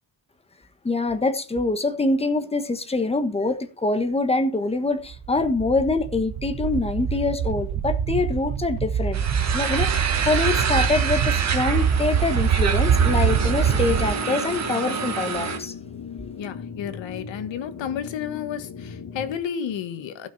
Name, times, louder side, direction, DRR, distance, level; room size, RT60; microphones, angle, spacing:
voice 1, 0.8-9.3 9.5-15.7, left 3 dB, 15° left, 1.3 m, -25 dB
sound 1, 5.1-14.1, right 8 dB, 55° right, 0.9 m, -24 dB
sound 2, 9.1-15.6, right 6 dB, 35° right, 1.8 m, -27 dB
sound 3, 12.9-19.4, left 5 dB, 60° left, 2.1 m, -38 dB
voice 2, 16.4-20.3, left 8 dB, 90° left, 1.6 m, -31 dB
15.5 x 6.2 x 4.2 m
wide cardioid pair, 170°, 44 cm